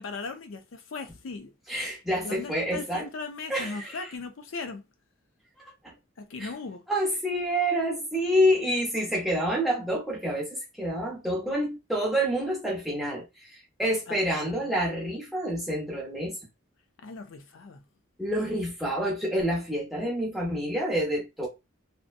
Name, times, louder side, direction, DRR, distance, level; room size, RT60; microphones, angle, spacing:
voice 1, 0.0-1.5 2.2-4.8 6.2-6.8 14.1-14.7 17.0-17.8, left 4 dB, 75° left, 0.5 m, -38 dB
voice 2, 1.7-3.1 3.5-4.1 5.8-5.9 6.4-6.5 6.9-16.4 18.2-21.5, equal, ahead, 0.8 m, -28 dB
2.6 x 2.1 x 2.5 m
head